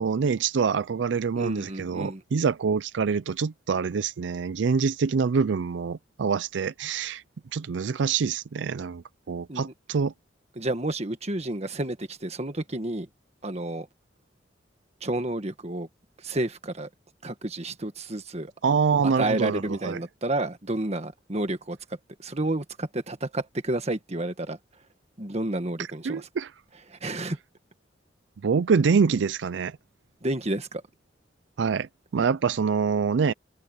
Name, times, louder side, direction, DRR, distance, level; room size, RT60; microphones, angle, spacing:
voice 1, 0.0-7.2 7.5-10.1 18.6-20.0 26.1-26.5 28.4-29.8 31.6-33.3, right 5 dB, 75° right, 0.4 m, -25 dB
voice 2, 1.4-2.2 9.5-9.7 10.6-13.1 13.4-13.9 15.0-15.9 16.2-16.9 17.2-18.5 19.0-21.8 22.2-24.6 25.2-26.3 26.9-27.4 30.2-30.8, right 1 dB, 35° right, 1.6 m, -30 dB
head